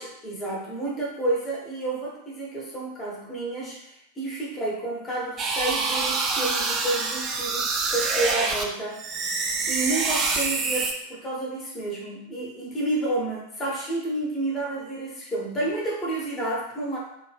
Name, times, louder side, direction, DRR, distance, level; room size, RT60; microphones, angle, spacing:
voice 1, 0.0-9.3 9.7-17.0, right 2 dB, 20° left, -4 dB, 0.9 m, -30 dB
sound 1, 5.4-8.6 9.0-10.9, right 4 dB, 30° right, 0.4 m, -26 dB
2.6 x 2.2 x 3.3 m, 0.77 s
figure-of-eight pair, 90°, 0 cm